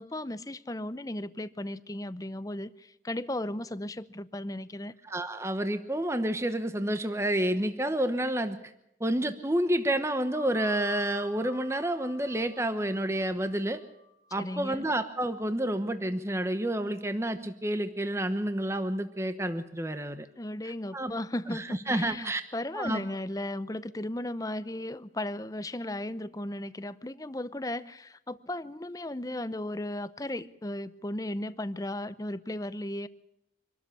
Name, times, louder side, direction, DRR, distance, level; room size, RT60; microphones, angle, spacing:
voice 1, 0.0-4.9 14.4-14.9 20.4-33.1, left 1 dB, 20° left, 15 dB, 0.7 m, -36 dB
voice 2, 5.0-8.6 9.0-13.8 14.3-20.3 20.6-21.1 21.5-22.4 22.7-23.1, right 1 dB, 15° right, 9 dB, 1.0 m, -29 dB
sound 1, 10.3-15.5, left 2 dB, 60° right, 4.8 m, -51 dB
25.5 x 13.0 x 8.4 m, 0.81 s
head